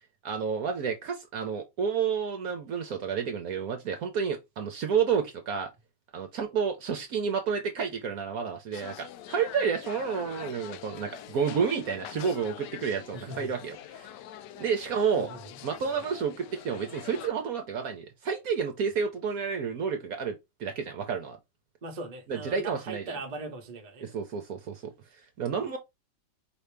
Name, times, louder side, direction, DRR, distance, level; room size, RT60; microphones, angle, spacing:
voice 1, 0.2-5.7 6.1-14.1 14.6-15.3 15.6-21.4 22.3-23.2 24.0-24.9 25.4-25.8, right 6 dB, 65° right, 1.1 m, -30 dB
sound 1, 8.7-17.3, left 11 dB, 80° left, 1.2 m, -45 dB
voice 2, 13.1-13.5 15.1-15.6 15.8-16.0 21.8-24.1, right 2 dB, 35° right, 0.8 m, -40 dB
5.0 x 2.7 x 3.3 m
omnidirectional pair, 1.9 m